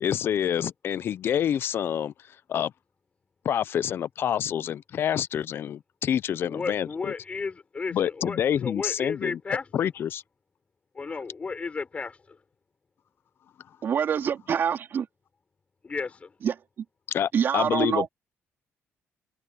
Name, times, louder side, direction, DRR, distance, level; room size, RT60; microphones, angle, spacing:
voice 1, 0.0-2.1 2.5-2.7 3.4-7.1 7.9-9.4 9.7-10.2 17.1-18.1, left 9 dB, 50° left, 0.6 m, -27 dB
voice 2, 6.4-9.9 10.9-12.4 15.8-16.3, left 4 dB, 25° left, 5.9 m, -34 dB
voice 3, 13.8-15.1 16.4-16.5 17.3-18.1, right 8 dB, 50° right, 3.0 m, -25 dB
cardioid pair, 135°, 5 cm